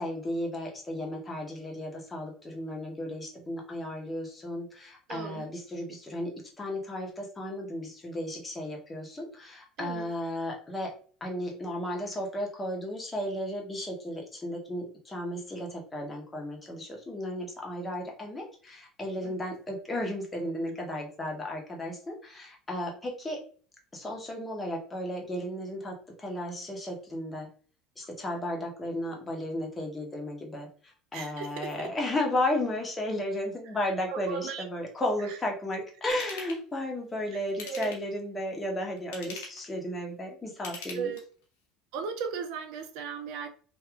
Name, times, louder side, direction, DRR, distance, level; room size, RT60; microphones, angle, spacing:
voice 1, 0.0-10.9 11.2-23.4 23.9-27.5 28.0-41.1, left 1 dB, 20° left, 0 dB, 1.1 m, -34 dB
voice 2, 5.1-5.5 9.8-10.1 19.2-19.3 31.1-31.9 34.1-34.6 35.2-35.4 35.7-35.8 37.6-37.9 40.9-41.2 41.9-43.5, right 6 dB, 65° right, 6 dB, 0.4 m, -36 dB
Ratchet pawl / Tools, 36.1-36.6 37.5-38.2 39.0-39.7 40.5-41.4 41.9-42.0, left 4 dB, 75° left, 0.9 m, -42 dB
2.9 x 2.6 x 2.4 m, 0.42 s
hypercardioid pair, 70°, 0 cm